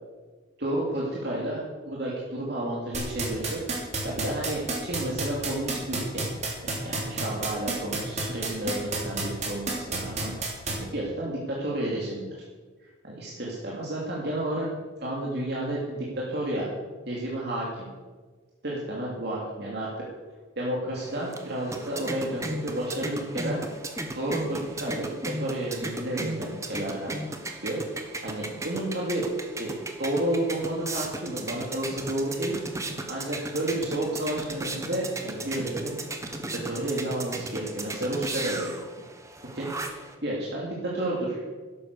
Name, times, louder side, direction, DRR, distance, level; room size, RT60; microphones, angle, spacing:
voice 1, 0.6-3.6 4.0-6.2 6.6-10.3 10.7-12.2 13.0-14.7 15.0-16.7 17.1-17.9 18.6-19.9 20.6-23.6 24.2-27.1 27.6-29.3 29.6-32.5 33.1-36.0 36.5-38.7 39.5-39.9 40.2-41.4, right 1 dB, 55° right, -5 dB, 2.8 m, -31 dB
sound 1, 2.9-10.7, right 4 dB, 35° right, 3.3 m, -29 dB
sound 2, 21.0-40.1, right 2 dB, 15° right, 1.2 m, -36 dB
13.0 x 11.5 x 6.8 m, 1.4 s
head